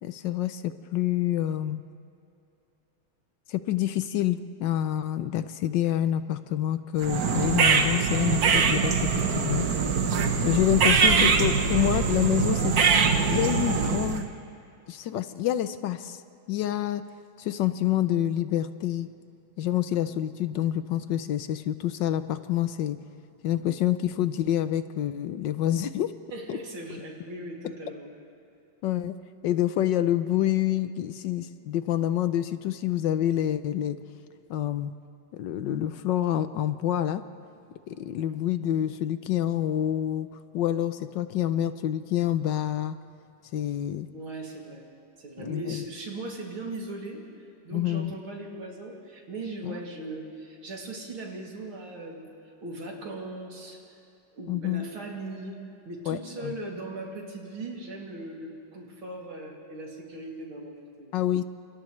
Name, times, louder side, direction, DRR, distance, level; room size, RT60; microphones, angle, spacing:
voice 1, 0.0-1.8 3.5-9.7 10.4-12.7 13.3-14.3 14.9-16.2 16.5-17.0 17.4-19.1 19.6-23.0 23.4-26.1 26.5-26.6 28.8-29.2 29.4-34.0 34.5-34.9 35.3-37.2 37.9-40.3 40.5-43.0 43.5-44.1 45.4-45.8 47.7-48.2 49.6-49.8 54.5-54.9 56.1-56.5 61.1-61.4, left 12 dB, 70° left, 11 dB, 1.2 m, -27 dB
sound 1, 7.0-14.3, right 5 dB, 50° right, 1.4 m, -23 dB
voice 2, 26.3-28.1 44.1-44.8 45.2-47.2 47.6-52.3 52.6-53.8 54.3-55.6 55.9-61.1, right 2 dB, 85° right, -1 dB, 3.5 m, -38 dB
29.0 x 27.5 x 3.2 m, 2.6 s
omnidirectional pair, 2.2 m